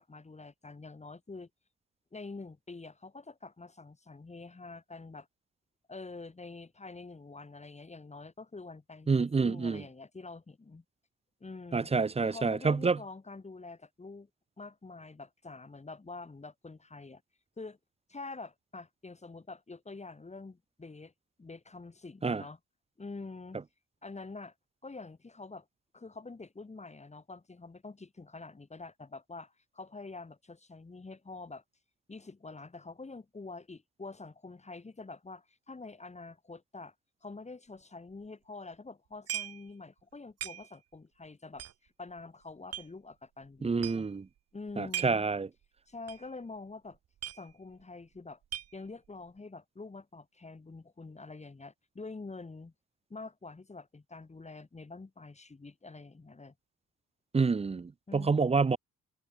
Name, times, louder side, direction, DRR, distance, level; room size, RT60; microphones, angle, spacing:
voice 1, 0.0-1.5 2.1-5.3 5.9-10.8 11.4-11.9 12.2-14.3 14.6-17.2 17.6-17.8 18.1-21.1 21.4-22.6 23.0-23.6 24.0-24.5 24.8-25.6 25.9-31.6 32.1-36.9 37.2-44.1 44.5-45.3 45.9-47.0 47.3-48.4 48.7-52.7 53.1-56.5 58.1-58.7, left 3 dB, 20° left, 3.3 m, -46 dB
voice 2, 9.1-9.8 11.7-13.0 22.2-22.4 43.6-44.3 44.8-45.5 57.3-58.8, right 4 dB, 20° right, 0.7 m, -28 dB
sound 1, 38.1-38.2 39.3-39.7 40.0-40.1 40.4-40.9 41.5-42.9 43.4-43.5 43.7-44.2 44.7-45.3 45.6-45.7 46.1-46.3 46.6-46.7 46.9-47.8 48.1-49.1, right 11 dB, 55° right, 0.8 m, -40 dB
cardioid pair, 90°, 30 cm